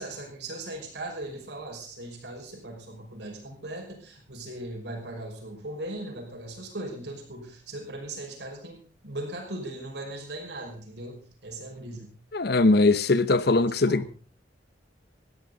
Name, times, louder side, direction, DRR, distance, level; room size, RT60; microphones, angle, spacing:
voice 1, 0.0-12.1 13.8-14.1, right 1 dB, 65° right, 5.8 m, -38 dB
voice 2, 12.3-14.1, left 3 dB, 60° left, 0.9 m, -21 dB
19.5 x 14.0 x 4.0 m
head